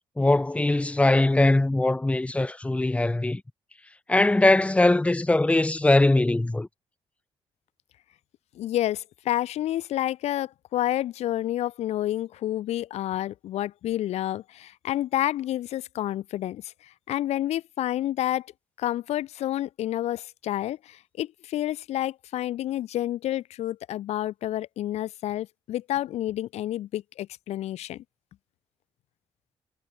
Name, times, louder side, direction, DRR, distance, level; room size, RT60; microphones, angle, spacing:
voice 1, 0.2-3.4 4.1-6.7, left 2 dB, 10° left, 1.6 m, -21 dB
voice 2, 8.6-18.5 18.8-28.0, left 13 dB, 85° left, 1.9 m, -29 dB
cardioid pair, 105°, 11 cm